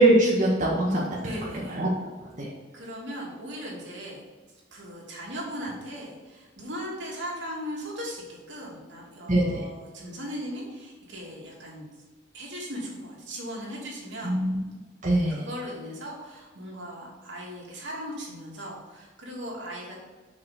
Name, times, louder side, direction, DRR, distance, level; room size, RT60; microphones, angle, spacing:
voice 1, 0.0-1.3 1.7-1.9 2.2-2.5 9.3-9.7 14.2-14.6 15.0-15.5, right 1 dB, 40° right, -6 dB, 1.6 m, -23 dB
voice 2, 1.2-1.8 2.7-4.2 4.7-11.9 12.3-14.4 15.3-20.1, equal, 70° right, -3 dB, 2.8 m, -38 dB
6.5 x 5.7 x 6.6 m, 1.4 s
head